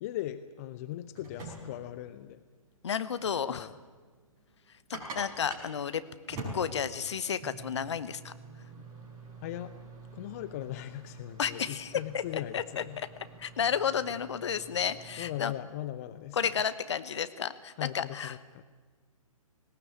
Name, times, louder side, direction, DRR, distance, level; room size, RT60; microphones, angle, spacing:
voice 1, 0.0-2.4 3.5-3.7 9.4-9.7 10.1-13.0 15.2-16.4 17.8-18.6, left 13 dB, 25° left, 13 dB, 0.6 m, -39 dB
sound 1, 0.9-15.4, right 2 dB, 20° right, 5.4 m, -47 dB
voice 2, 2.8-3.7 4.9-6.0 6.3-8.3 11.4-12.8 13.4-15.5 16.3-18.4, left 7 dB, 50° left, 13 dB, 1.1 m, -32 dB
19.0 x 18.0 x 8.6 m, 1.4 s
figure-of-eight pair, 130°, 18 cm